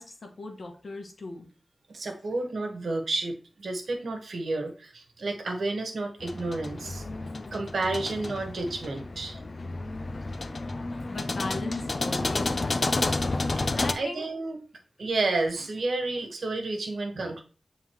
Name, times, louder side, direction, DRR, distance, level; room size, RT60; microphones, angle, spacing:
voice 1, 0.0-1.5 11.0-13.0 13.7-14.3, left 2 dB, 65° left, 3 dB, 1.5 m, -38 dB
voice 2, 1.9-7.0 7.5-9.4 13.6-14.6 15.0-17.4, right 2 dB, 75° right, 4 dB, 1.3 m, -31 dB
sound 1, 6.2-13.9, left 2 dB, 45° left, 0.5 m, -31 dB
9.1 x 3.7 x 3.0 m, 0.36 s
wide cardioid pair, 80°, 0 cm